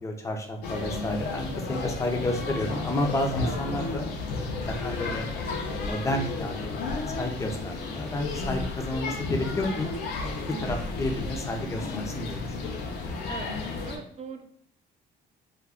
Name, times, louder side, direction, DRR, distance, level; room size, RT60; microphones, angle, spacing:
voice 1, 0.0-4.1 4.7-5.3 5.7-6.5 6.9-9.9 10.6-12.7, left 1 dB, 15° left, 3 dB, 0.5 m, -31 dB
sound 1, 0.6-14.0, left 3 dB, 80° left, 0.6 m, -33 dB
voice 2, 10.5-10.9 13.3-13.5 13.8-14.5, right 6 dB, 40° right, 5 dB, 0.4 m, -40 dB
2.4 x 2.2 x 3.4 m, 0.65 s
cardioid pair, 110°, 17 cm